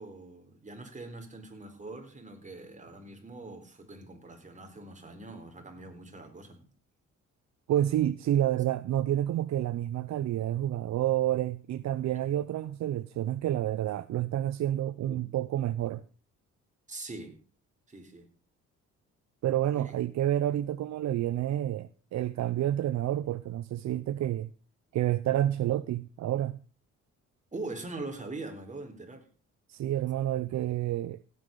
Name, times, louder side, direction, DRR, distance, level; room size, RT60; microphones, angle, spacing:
voice 1, 0.0-6.7 15.1-15.2 16.9-17.4 17.9-18.3 19.7-19.9 27.5-29.3, right 2 dB, 25° right, 4.1 m, -43 dB
voice 2, 7.7-16.0 19.4-24.5 24.9-26.6 29.7-31.2, right 12 dB, 65° right, 0.7 m, -29 dB
16.5 x 8.5 x 5.4 m
cardioid pair, 90°, 30 cm